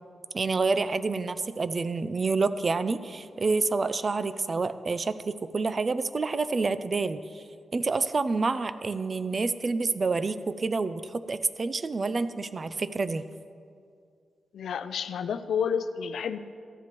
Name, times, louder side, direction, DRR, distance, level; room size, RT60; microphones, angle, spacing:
voice 1, 0.3-7.4 7.7-13.2, right 3 dB, 35° right, 13 dB, 0.3 m, -28 dB
voice 2, 14.5-16.4, left 7 dB, 80° left, 12 dB, 0.4 m, -30 dB
14.0 x 10.5 x 3.0 m, 2.3 s
wide cardioid pair, 145°, 0 cm